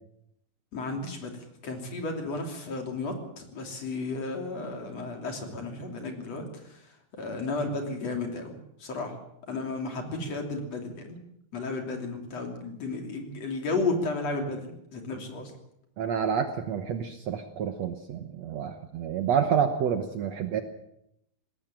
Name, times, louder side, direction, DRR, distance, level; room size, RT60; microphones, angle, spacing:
voice 1, 0.7-1.3 1.6-6.8 7.2-9.2 9.5-11.2 11.5-15.5, left 3 dB, 50° left, 3 dB, 4.0 m, -33 dB
voice 2, 16.0-20.6, right 7 dB, 60° right, 7 dB, 1.9 m, -28 dB
20.0 x 18.0 x 7.5 m, 0.79 s
omnidirectional pair, 4.0 m